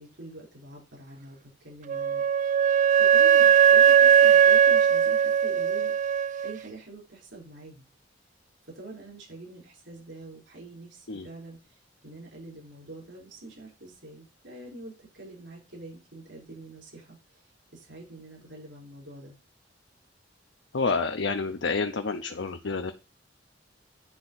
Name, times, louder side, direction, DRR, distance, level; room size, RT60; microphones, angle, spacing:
voice 1, 0.0-6.2 6.4-7.9 8.7-17.2 17.7-19.4, right 2 dB, 75° right, -3 dB, 5.3 m, -46 dB
Wind instrument woodwind instrument, 1.9-6.5, right 8 dB, 40° right, 0.3 m, -19 dB
voice 2, 20.7-22.9, left 4 dB, 80° left, 6 dB, 0.7 m, -28 dB
10.5 x 3.6 x 5.7 m, 0.32 s
head